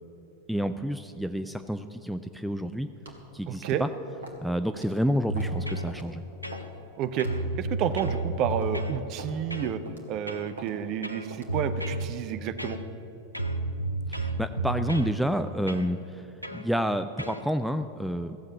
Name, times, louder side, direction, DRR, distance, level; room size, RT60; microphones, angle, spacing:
voice 1, 0.5-2.9 3.3-3.9 4.4-6.2 14.1-18.4, equal, ahead, 9 dB, 0.4 m, -29 dB
sound 1, 3.1-3.2 3.6-3.9 4.2-4.4 4.8-4.9 5.4-5.6 5.9-6.0 6.5-6.8 7.2-7.3 7.8-8.0 8.5-8.7 9.2-9.4 9.9-10.1 10.6-10.7 11.3-11.5, right 2 dB, 65° right, 2.0 m, -43 dB
voice 2, 3.5-3.8 7.0-7.3 7.6-9.8 10.1-12.8, right 9 dB, 40° right, 11 dB, 0.8 m, -30 dB
sound 2, 5.3-5.9 6.4-6.9 7.2-9.0 9.5-9.7 10.3-10.5 11.0-12.1 12.6-13.1 13.3-15.1 15.7-15.9 16.4-16.7 17.2-17.4, right 2 dB, 90° right, 0.7 m, -32 dB
15.0 x 7.7 x 8.9 m, 2.9 s
figure-of-eight pair, 90°, 0 cm